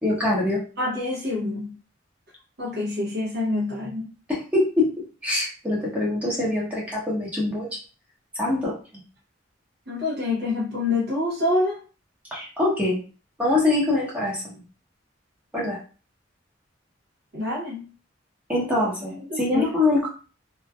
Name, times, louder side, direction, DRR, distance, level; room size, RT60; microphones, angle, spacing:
voice 1, 0.0-0.6 4.3-4.9 5.2-7.7 8.3-8.7 12.3-13.0 13.4-14.5 15.5-15.8 18.5-20.1, left 2 dB, 10° right, -7 dB, 0.8 m, -24 dB
voice 2, 0.8-1.8 2.6-4.1 9.9-11.8 17.3-17.9 19.3-19.7, left 2 dB, 60° right, -6 dB, 0.9 m, -26 dB
3.1 x 2.4 x 2.3 m, 0.37 s
head